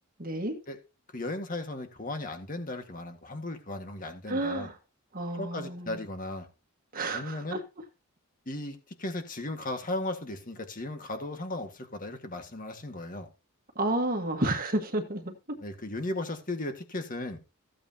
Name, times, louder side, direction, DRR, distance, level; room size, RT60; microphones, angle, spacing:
voice 1, 0.2-0.6 4.3-4.8 5.1-6.0 6.9-7.6 13.7-15.3, right 2 dB, 40° right, 1.6 m, -30 dB
voice 2, 1.1-4.7 5.3-6.5 7.1-7.6 8.5-13.3 15.6-17.4, left 2 dB, 35° left, 1.8 m, -36 dB
15.0 x 8.6 x 2.9 m
head